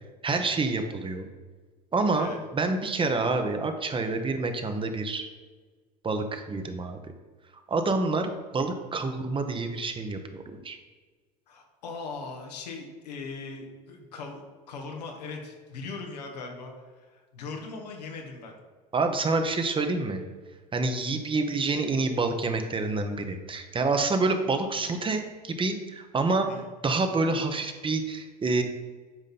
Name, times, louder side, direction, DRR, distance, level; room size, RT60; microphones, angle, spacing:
voice 1, 0.2-1.3 1.9-5.3 6.0-7.0 7.7-10.8 18.9-20.2 20.7-26.5 26.8-28.6, right 3 dB, 25° right, 6 dB, 1.1 m, -27 dB
voice 2, 11.5-18.5 26.5-26.7, left 4 dB, 80° left, 2 dB, 1.5 m, -40 dB
9.1 x 5.2 x 4.3 m, 1.4 s
hypercardioid pair, 75°, 21 cm